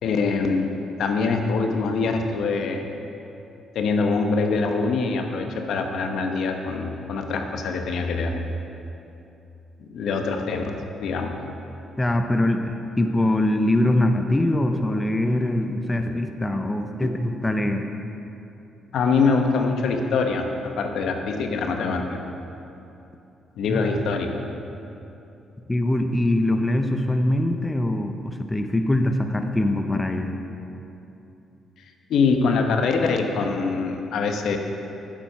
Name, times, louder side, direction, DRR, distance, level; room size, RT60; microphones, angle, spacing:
voice 1, 0.0-2.9 3.7-8.3 9.8-11.4 17.0-17.1 18.9-22.2 23.6-24.4 32.1-34.6, left 4 dB, 75° left, 4 dB, 0.9 m, -24 dB
voice 2, 12.0-17.9 23.7-23.8 25.7-30.3, left 1 dB, 15° left, 5 dB, 0.6 m, -23 dB
8.9 x 7.5 x 5.6 m, 2.8 s
cardioid pair, 90°, 0 cm